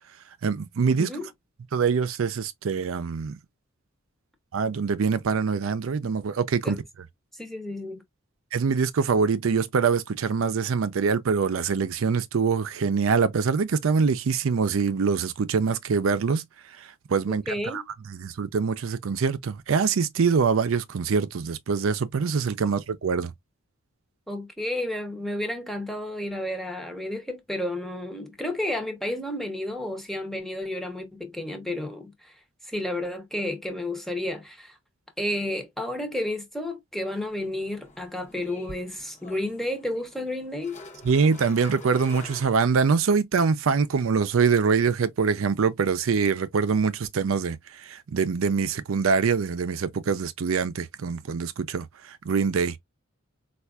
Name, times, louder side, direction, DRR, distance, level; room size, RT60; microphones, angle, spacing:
voice 1, 0.4-1.1 1.7-3.4 4.5-6.8 8.5-16.4 16.8-17.8 18.1-23.3 41.0-52.8, right 5 dB, 80° right, 0.5 m, -24 dB
voice 2, 7.3-8.0 17.3-17.8 24.3-32.3 32.7-34.7 35.2-40.8, left 1 dB, ahead, 0.7 m, -31 dB
sound 1, 37.3-43.1, left 2 dB, 35° left, 0.8 m, -47 dB
4.3 x 2.4 x 2.3 m
head